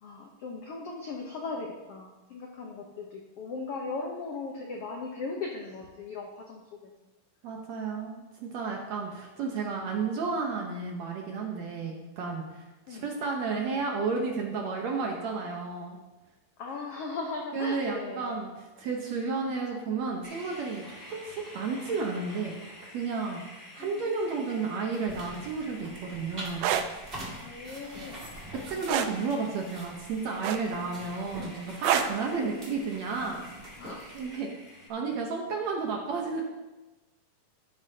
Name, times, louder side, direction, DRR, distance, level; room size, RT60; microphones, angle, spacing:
voice 1, 0.0-6.9 12.9-13.1 16.6-18.4 23.8-24.1 27.4-28.2 32.3-32.5 33.8-34.2, left 3 dB, 80° left, 0 dB, 1.3 m, -38 dB
voice 2, 7.4-16.0 17.5-20.8 21.1-26.7 28.5-33.4 34.1-34.5 34.9-36.4, right 4 dB, 65° right, 1 dB, 1.9 m, -32 dB
sound 1, 20.2-34.9, left 1 dB, 25° left, 2.7 m, -49 dB
sound 2, 25.1-34.4, right 1 dB, 20° right, 1.6 m, -44 dB
sound 3, 26.5-26.9 28.9-29.2 30.4-30.9 31.8-32.2 33.6-33.8, right 10 dB, 80° right, 2.0 m, -26 dB
14.0 x 8.6 x 2.8 m, 1.1 s
omnidirectional pair, 4.1 m